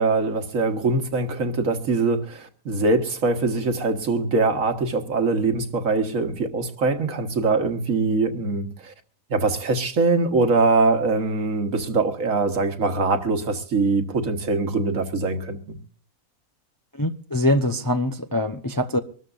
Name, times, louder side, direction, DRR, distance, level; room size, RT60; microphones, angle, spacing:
voice 1, 0.0-8.9 9.3-15.8, right 3 dB, 65° right, 1.8 m, -23 dB
voice 2, 17.0-19.0, left 1 dB, 20° left, 0.6 m, -23 dB
24.5 x 13.0 x 2.5 m
omnidirectional pair, 1.5 m